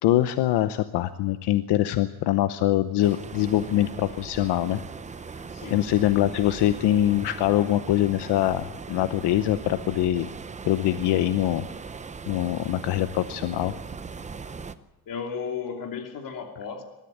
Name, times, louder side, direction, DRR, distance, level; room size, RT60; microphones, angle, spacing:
voice 1, 0.0-4.8 5.7-10.3 10.6-11.6 12.3-13.7, left 13 dB, 80° left, 11 dB, 0.9 m, -23 dB
sound 1, 3.0-14.8, right 5 dB, 20° right, 0.7 m, -39 dB
voice 2, 15.1-16.8, left 6 dB, 55° left, 4 dB, 2.9 m, -34 dB
20.5 x 13.0 x 9.9 m, 1.1 s
cardioid pair, 150°, 40 cm